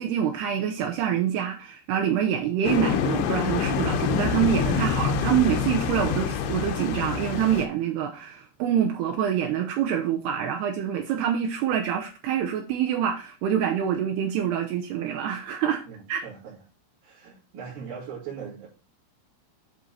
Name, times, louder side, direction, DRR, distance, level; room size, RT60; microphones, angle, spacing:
voice 1, 0.0-15.8 16.1-16.3, right 9 dB, 85° right, 2.3 m, -26 dB
sound 1, 2.6-7.7, left 7 dB, 80° left, 3.2 m, -26 dB
voice 2, 15.8-16.6 17.0-18.7, right 7 dB, 50° right, 3.8 m, -40 dB
10.5 x 4.3 x 4.1 m
omnidirectional pair, 5.7 m